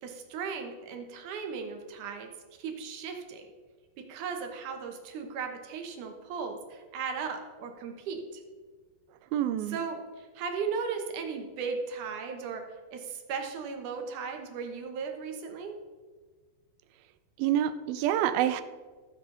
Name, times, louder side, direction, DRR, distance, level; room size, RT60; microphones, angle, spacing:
voice 1, 0.0-2.3 2.6-3.4 4.0-8.4 9.7-12.6 12.9-15.8, right 5 dB, 65° right, 4 dB, 2.3 m, -36 dB
voice 2, 9.3-9.8 17.4-18.6, right 11 dB, 80° right, 12 dB, 2.4 m, -27 dB
14.0 x 7.5 x 3.8 m, 1.4 s
omnidirectional pair, 4.3 m